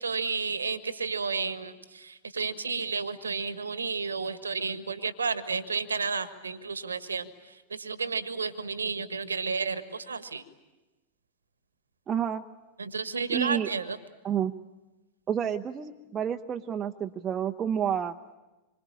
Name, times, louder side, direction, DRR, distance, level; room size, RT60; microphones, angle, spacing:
voice 1, 0.0-7.3 7.7-10.4 12.8-14.0, right 5 dB, 75° right, 12 dB, 1.5 m, -32 dB
voice 2, 12.1-12.4 13.3-13.7 14.2-14.5 15.3-18.1, right 8 dB, 25° right, 3 dB, 0.8 m, -29 dB
26.5 x 25.0 x 8.7 m, 1.1 s
figure-of-eight pair, 90°, 0 cm